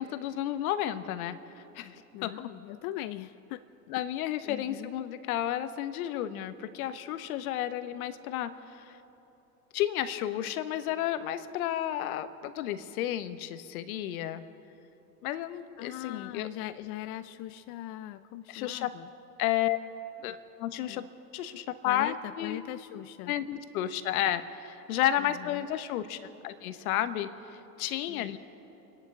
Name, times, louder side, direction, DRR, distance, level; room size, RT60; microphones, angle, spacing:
voice 1, 0.0-2.3 3.9-8.8 9.7-14.4 15.2-16.5 18.5-18.9 19.4-19.8 20.2-21.0 21.3-22.6 23.3-27.3 27.8-28.4, left 12 dB, 65° left, 11 dB, 1.2 m, -32 dB
voice 2, 2.1-3.6 3.9-4.0 4.5-4.9 15.8-19.1 20.3-20.4 20.9-21.0 21.8-23.3 25.2-25.7 28.1-28.4, left 14 dB, 40° left, 11 dB, 0.5 m, -40 dB
28.0 x 11.0 x 3.8 m, 3.0 s
hypercardioid pair, 100°, 46 cm